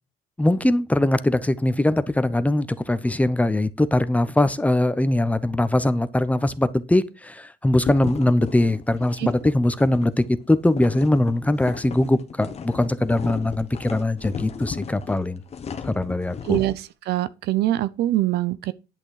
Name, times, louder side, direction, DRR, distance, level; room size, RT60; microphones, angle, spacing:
voice 1, 0.4-15.4 15.8-16.6, left 1 dB, 10° left, 0.8 m, -21 dB
sound 1, 7.8-16.8, left 6 dB, 40° left, 1.2 m, -36 dB
voice 2, 16.5-18.7, right 14 dB, 75° right, 0.7 m, -23 dB
10.5 x 6.2 x 4.8 m
cardioid pair, 110°, 17 cm